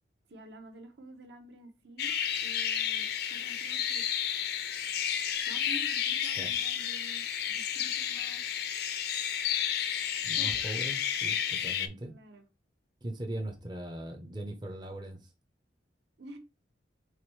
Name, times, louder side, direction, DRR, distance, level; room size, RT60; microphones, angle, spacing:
voice 1, 0.3-2.1 2.4-4.0 5.4-8.4 10.4-10.6 12.1-12.5 16.2-16.4, right 1 dB, 60° right, 0.9 m, -49 dB
sound 1, 2.0-11.9, left 9 dB, 55° left, 0.5 m, -31 dB
voice 2, 10.2-12.1 13.0-15.3, right 1 dB, 20° right, 0.6 m, -40 dB
4.8 x 3.5 x 3.1 m
head